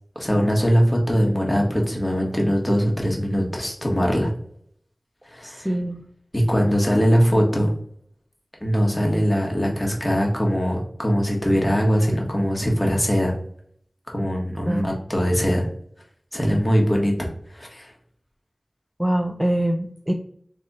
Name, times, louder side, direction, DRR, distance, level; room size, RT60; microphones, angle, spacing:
voice 1, 0.1-4.3 5.2-5.7 6.3-7.7 8.6-13.3 14.1-15.6 16.3-17.3 17.5-17.9, equal, 20° left, -1 dB, 1.4 m, -21 dB
voice 2, 5.4-6.0 14.6-14.9 19.0-20.1, right 1 dB, 10° right, 4 dB, 0.4 m, -24 dB
3.4 x 3.3 x 4.1 m, 0.63 s
wide cardioid pair, 60°, 0 cm